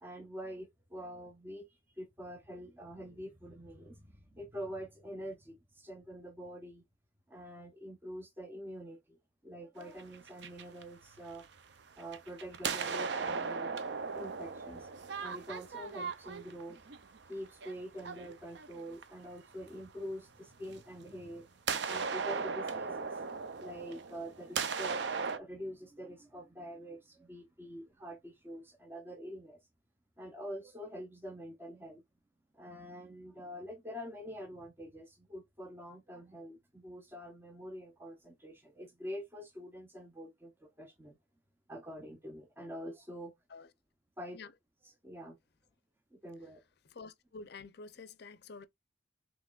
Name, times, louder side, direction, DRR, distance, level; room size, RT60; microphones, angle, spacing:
voice 1, 0.0-6.8 7.3-9.2 9.4-11.4 12.0-13.7 14.1-14.9 15.2-16.8 17.3-21.6 21.9-29.6 30.2-32.0 32.5-41.2 41.7-43.3 44.2-44.4 44.8-45.4 46.1-46.6, equal, 10° right, 0.6 m, -46 dB
sound 1, 9.8-11.6 12.0-19.2 20.7-20.8 21.7-25.4, right 5 dB, 55° right, 0.5 m, -37 dB
voice 2, 46.9-48.7, left 4 dB, 55° left, 0.5 m, -48 dB
5.8 x 3.0 x 2.3 m
head